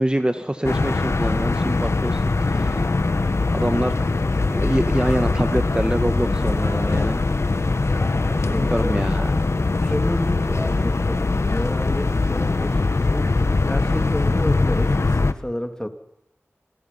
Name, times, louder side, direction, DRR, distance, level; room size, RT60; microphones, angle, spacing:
voice 1, 0.0-2.8 3.5-7.2 8.5-9.3, right 1 dB, 20° right, 8 dB, 1.5 m, -25 dB
sound 1, 0.6-15.3, left 3 dB, 70° left, 1.3 m, -21 dB
voice 2, 7.8-8.9 9.7-15.9, equal, 15° left, 6 dB, 2.9 m, -32 dB
27.5 x 21.5 x 5.7 m, 0.78 s
wide cardioid pair, 55°, 5 cm